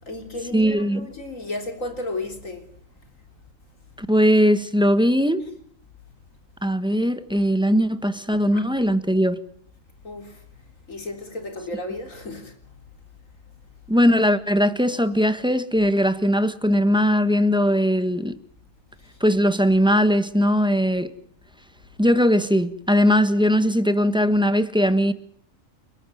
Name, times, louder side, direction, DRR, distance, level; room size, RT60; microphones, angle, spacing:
voice 1, 0.0-2.7 8.5-8.6 10.0-10.4 10.9-12.5 19.1-19.2, left 2 dB, 70° left, 4.2 m, -33 dB
voice 2, 0.5-1.1 4.0-5.4 6.6-9.4 13.9-18.4 19.2-21.1 22.0-25.1, equal, 5° right, 1.3 m, -20 dB
29.5 x 13.5 x 9.3 m
omnidirectional pair, 1.4 m